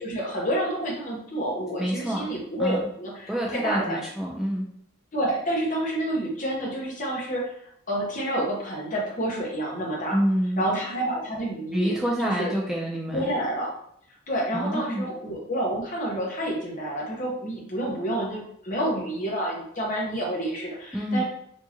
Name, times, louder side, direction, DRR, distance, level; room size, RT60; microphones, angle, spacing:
voice 1, 0.0-4.0 5.1-7.6 7.9-10.2 10.6-12.5 13.1-13.7 14.3-21.2, right 1 dB, 40° left, -3 dB, 1.1 m, -29 dB
voice 2, 1.8-2.3 2.6-2.8 3.3-4.7 10.1-10.6 11.7-13.3 14.5-15.1 20.9-21.2, equal, 5° right, -4 dB, 0.4 m, -27 dB
4.5 x 2.8 x 2.9 m, 0.71 s
head